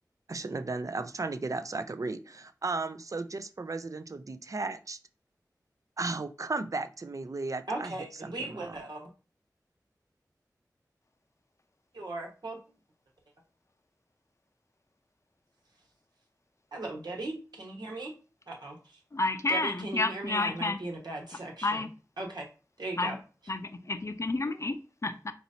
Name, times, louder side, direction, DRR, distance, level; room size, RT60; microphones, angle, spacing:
voice 1, 0.3-5.0 6.0-7.9 8.2-8.8, right 3 dB, 50° right, 11 dB, 0.4 m, -35 dB
voice 2, 7.7-9.1 11.9-12.6 16.7-18.1 18.5-19.0 19.5-21.9 22.2-22.4 22.8-23.2, right 2 dB, 85° right, -1 dB, 1.4 m, -38 dB
voice 3, 19.1-20.8 21.6-21.9 23.0-23.2 23.5-25.3, left 2 dB, 45° left, 9 dB, 0.5 m, -30 dB
4.4 x 4.0 x 2.7 m, 0.33 s
wide cardioid pair, 40°, 7 cm